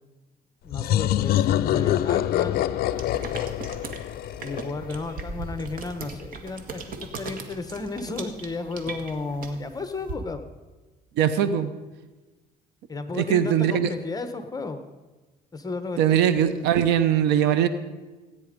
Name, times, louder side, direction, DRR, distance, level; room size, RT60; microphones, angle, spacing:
voice 1, 0.6-2.7 4.4-10.4 12.9-14.8 15.5-16.2, left 3 dB, 20° left, 8 dB, 1.0 m, -33 dB
sound 1, 0.7-5.3, left 12 dB, 65° left, 0.5 m, -25 dB
sound 2, 2.9-10.1, right 4 dB, 55° right, 1.7 m, -38 dB
voice 2, 11.2-11.7 13.1-13.9 16.0-17.7, right 9 dB, 85° right, 12 dB, 0.9 m, -21 dB
17.0 x 9.6 x 5.2 m, 1.2 s
cardioid pair, 110°, 17 cm